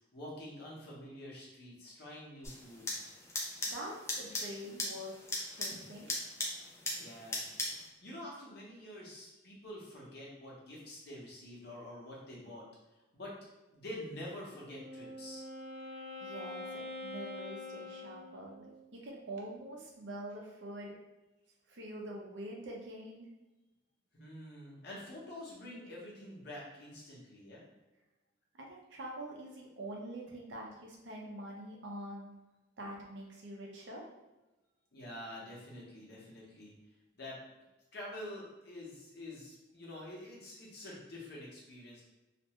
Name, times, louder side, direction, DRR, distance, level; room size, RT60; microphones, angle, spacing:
voice 1, 0.1-2.9 7.0-7.4 8.0-12.6 13.1-13.3 13.7-15.4 24.1-27.6 34.9-36.7 37.2-37.4 37.9-42.0, left 1 dB, 55° left, -5 dB, 0.9 m, -47 dB
sound 1, 2.4-7.9, left 2 dB, 15° left, 0.4 m, -39 dB
voice 2, 3.7-5.1 5.4-6.1 15.9-21.0 21.7-23.3 28.6-32.3 32.8-34.0, right 1 dB, 65° right, -1 dB, 0.6 m, -45 dB
Wind instrument woodwind instrument, 14.5-18.8, left 2 dB, 20° right, 0.9 m, -45 dB
2.5 x 2.2 x 2.9 m, 1.0 s
head